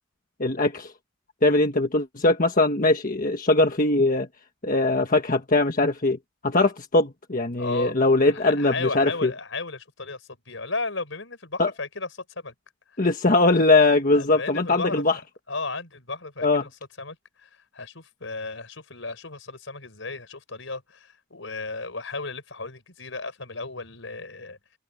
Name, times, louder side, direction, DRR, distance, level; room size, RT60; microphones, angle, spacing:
voice 1, 0.4-0.9 1.4-4.3 4.6-6.2 6.4-9.3 11.6-11.7 13.0-15.2 16.4-16.6, left 2 dB, 45° left, 1.4 m, -21 dB
voice 2, 7.6-7.9 8.2-12.5 14.1-15.0 15.5-16.7 17.0-24.6, left 3 dB, 75° left, 5.0 m, -35 dB
head